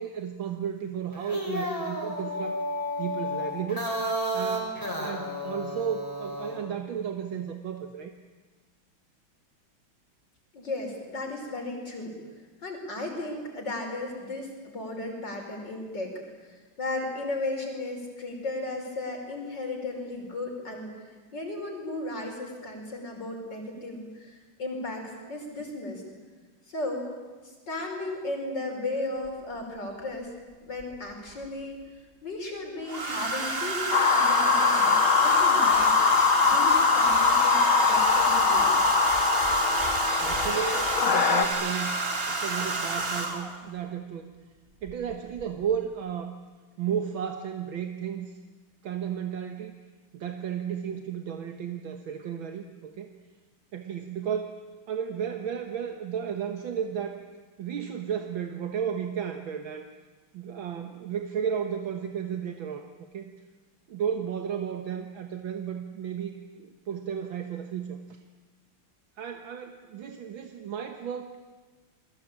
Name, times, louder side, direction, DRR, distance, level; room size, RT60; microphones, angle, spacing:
voice 1, 0.0-2.6 3.0-3.9 4.3-4.7 5.0-8.1 40.2-41.9 42.3-44.3 44.8-46.4 46.8-48.4 48.8-49.8 50.1-53.1 53.7-54.6 54.9-57.2 57.6-59.9 60.3-62.9 63.1-63.3 63.9-68.2 69.2-71.4, right 8 dB, 75° right, 6 dB, 2.0 m, -33 dB
sound 1, 1.1-6.6, equal, 10° left, 5.7 m, -32 dB
voice 2, 10.5-12.2 12.6-16.1 16.4-26.0 26.7-27.1 27.4-30.3 30.6-31.8 32.2-38.7, left 2 dB, 60° left, 2 dB, 6.1 m, -35 dB
Domestic sounds home sounds, 29.3-29.4 30.8-31.4 32.9-43.6 44.9-45.1 45.4-45.7, right 3 dB, 30° right, 2.1 m, -30 dB
sound 2, 33.9-41.5, left 5 dB, 85° left, 2.5 m, -22 dB
29.0 x 22.5 x 8.8 m, 1.3 s
omnidirectional pair, 2.2 m